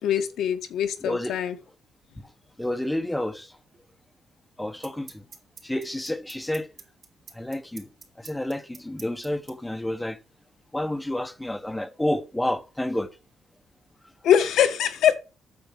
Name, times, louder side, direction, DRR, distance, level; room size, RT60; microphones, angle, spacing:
voice 1, 0.0-1.6 14.2-15.2, left 9 dB, 80° left, 1.4 m, -22 dB
voice 2, 1.0-1.4 2.6-3.5 4.6-5.2 5.6-6.7 7.4-7.8 8.2-10.2 10.7-13.1, left 1 dB, 5° left, 1.1 m, -29 dB
Clock ticking, 3.7-3.8 4.8-9.5, right 5 dB, 55° right, 3.5 m, -44 dB
8.7 x 7.1 x 5.2 m
cardioid pair, 90°, 0 cm